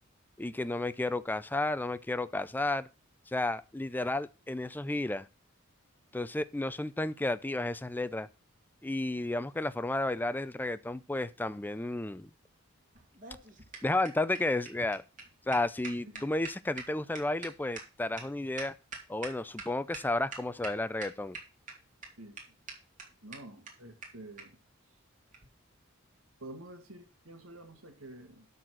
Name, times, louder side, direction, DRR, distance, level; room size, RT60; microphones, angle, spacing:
voice 1, 0.4-2.9 3.3-5.3 6.1-8.3 8.8-12.3 13.8-15.0 15.5-18.7 19.1-21.4, left 2 dB, 10° left, 0.4 m, -32 dB
sound 1, 12.9-19.6 19.9-20.0 20.3-20.7 21.0-21.7 22.0-22.1 22.4-22.5 22.7-22.8 23.0-23.1 23.3-23.4 23.7-23.8 24.0-24.1 24.4-24.5 25.3-25.5, right 4 dB, 40° right, 2.7 m, -43 dB
voice 2, 23.2-24.6 26.4-28.5, right 1 dB, 80° right, 2.2 m, -49 dB
12.0 x 4.2 x 6.2 m
head